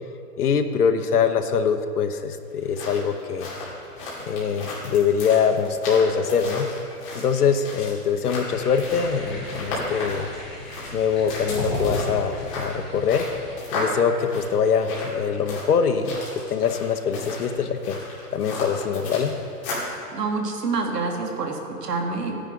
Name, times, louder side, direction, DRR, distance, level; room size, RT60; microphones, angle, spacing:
voice 1, 0.4-3.5 4.3-6.7 7.1-10.3 10.9-13.3 13.7-18.0 18.3-19.3, left 6 dB, 70° left, 8 dB, 1.0 m, -23 dB
sound 1, 2.5-20.0, left 2 dB, 20° left, 2.5 m, -35 dB
sound 2, 8.5-13.5, left 1 dB, ahead, 1.3 m, -34 dB
voice 2, 20.1-22.4, right 4 dB, 80° right, 2 dB, 2.0 m, -27 dB
14.0 x 9.9 x 3.8 m, 2.4 s
hypercardioid pair, 175°, 47 cm